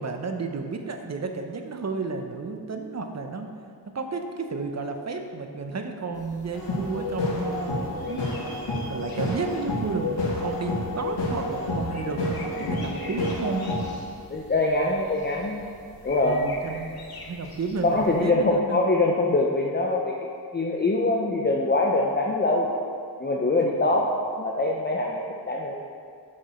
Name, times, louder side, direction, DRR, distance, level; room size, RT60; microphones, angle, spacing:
voice 1, 0.0-3.5 3.9-7.8 8.1-8.4 8.9-13.7 16.2-16.9 17.2-18.8, right 4 dB, 40° right, 5 dB, 0.7 m, -32 dB
sound 1, 6.1-18.3, left 2 dB, 60° left, 1.3 m, -46 dB
sound 2, 6.5-13.9, left 1 dB, 85° left, 1.5 m, -29 dB
voice 2, 12.6-13.0 14.3-15.6 16.0-16.4 17.8-20.1 20.5-22.7 23.2-24.1 24.4-25.8, left 2 dB, 25° left, -1 dB, 0.6 m, -23 dB
6.4 x 5.9 x 4.3 m, 2.3 s
wide cardioid pair, 80°, 42 cm